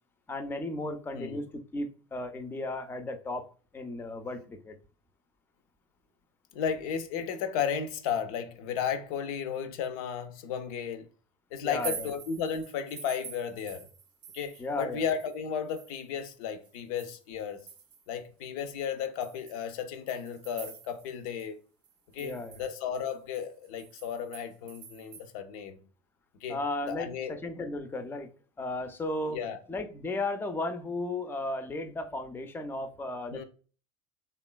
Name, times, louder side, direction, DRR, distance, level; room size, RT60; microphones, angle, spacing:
voice 1, 0.3-3.5 3.7-4.8 11.6-12.1 14.6-15.0 22.2-22.6 26.5-28.3 28.6-29.4 29.7-33.4, left 2 dB, 10° left, 0.4 m, -35 dB
voice 2, 6.5-11.1 11.5-13.9 14.3-17.6 18.1-21.6 22.1-25.8 26.4-26.6 26.9-27.4 29.2-29.6 33.3-33.4, left 7 dB, 65° left, 0.5 m, -34 dB
sound 1, 11.6-14.7 15.0-18.2 18.6-18.7 19.2-21.1 21.4-21.5 21.8-25.3, right 6 dB, 85° right, 0.6 m, -46 dB
2.9 x 2.3 x 2.2 m
hypercardioid pair, 75°, 20 cm